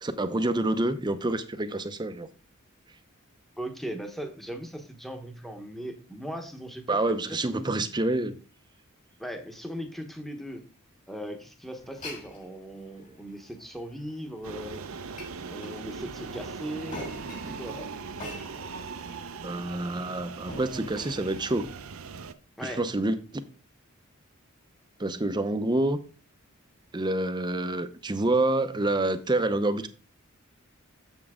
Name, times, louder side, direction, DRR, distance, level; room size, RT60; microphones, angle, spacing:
voice 1, 0.0-2.3 6.9-8.4 19.4-21.7 22.6-23.4 25.0-26.0 26.9-29.9, right 2 dB, 20° right, 0.6 m, -27 dB
voice 2, 3.6-7.8 9.2-10.6 11.1-14.8 15.5-17.1 17.5-17.8 22.6-22.8, equal, ahead, 1.0 m, -38 dB
Glass, 11.8-21.7, left 1 dB, 35° left, 2.6 m, -46 dB
sound 1, 14.4-22.3, right 5 dB, 75° right, 0.6 m, -40 dB
7.2 x 7.2 x 3.6 m
head